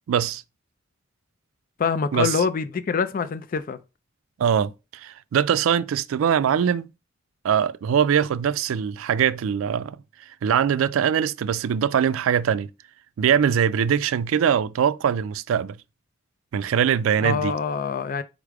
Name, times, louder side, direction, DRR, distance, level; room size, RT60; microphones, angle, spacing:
voice 1, 0.1-0.4 2.1-2.4 4.4-6.9 7.4-10.0 10.4-12.7 13.2-15.8 16.5-17.5, right 8 dB, 80° right, 0.3 m, -22 dB
voice 2, 1.8-3.8 17.2-18.2, left 6 dB, 45° left, 0.4 m, -25 dB
4.9 x 2.0 x 4.7 m
head